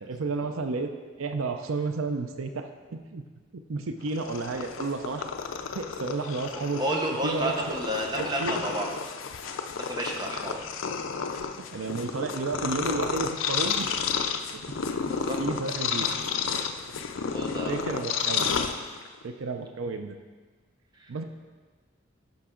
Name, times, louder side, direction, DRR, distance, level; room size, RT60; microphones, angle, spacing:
voice 1, 0.0-0.9 1.2-3.2 3.5-5.3 5.7-6.8 7.2-7.5 8.4-8.6 11.7-13.9 14.5-14.6 15.2-16.1 17.7-18.5 19.2-20.2 21.1-21.2, right 3 dB, 85° right, 6 dB, 0.6 m, -31 dB
Purr, 4.1-19.2, left 6 dB, 75° left, 0.5 m, -31 dB
voice 2, 6.5-8.9 9.9-10.6 15.1-15.4 17.3-18.0, right 1 dB, 20° right, 0 dB, 0.9 m, -31 dB
10.5 x 5.8 x 3.8 m, 1.4 s
head